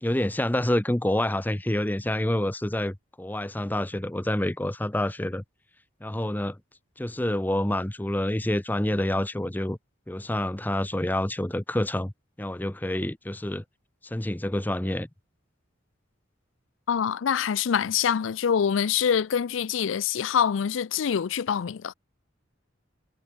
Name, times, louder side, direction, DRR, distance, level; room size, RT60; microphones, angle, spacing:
voice 1, 0.0-5.4 6.0-6.6 7.0-9.8 10.1-12.1 12.4-13.6 14.0-15.1, left 1 dB, 10° left, 0.7 m, -27 dB
voice 2, 16.9-21.9, left 7 dB, 85° left, 0.4 m, -25 dB
head